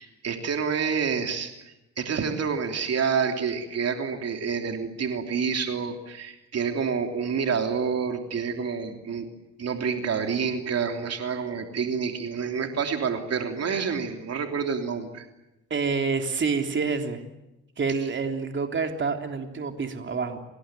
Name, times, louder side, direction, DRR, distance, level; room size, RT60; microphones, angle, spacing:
voice 1, 0.0-9.3 9.6-15.3, right 6 dB, 55° right, 4 dB, 3.3 m, -28 dB
voice 2, 15.7-17.2 17.8-20.4, right 5 dB, 40° right, 4 dB, 3.4 m, -27 dB
28.5 x 20.5 x 9.2 m, 0.95 s
cardioid pair, 90°, 30 cm